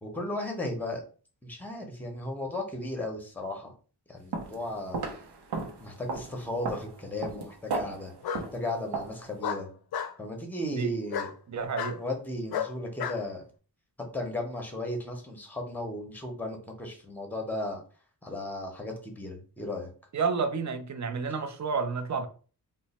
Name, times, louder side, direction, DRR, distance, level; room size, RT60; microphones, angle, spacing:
voice 1, 0.0-1.0 1.4-3.7 4.1-5.0 5.8-8.1 8.5-9.7 10.2-11.3 12.0-13.4 14.1-17.8 18.2-19.9, left 1 dB, 5° left, 0.7 m, -35 dB
sound 1, 4.3-4.6 4.9-9.3, right 4 dB, 80° right, 0.8 m, -35 dB
Bark, 6.1-6.7 8.2-8.4 9.4-10.1 11.1-11.3 11.8-12.0 12.5-13.2, left 8 dB, 70° left, 0.5 m, -33 dB
voice 2, 11.5-12.0 20.1-22.3, right 5 dB, 45° right, 0.5 m, -30 dB
3.0 x 2.2 x 4.1 m
wide cardioid pair, 130°, 39 cm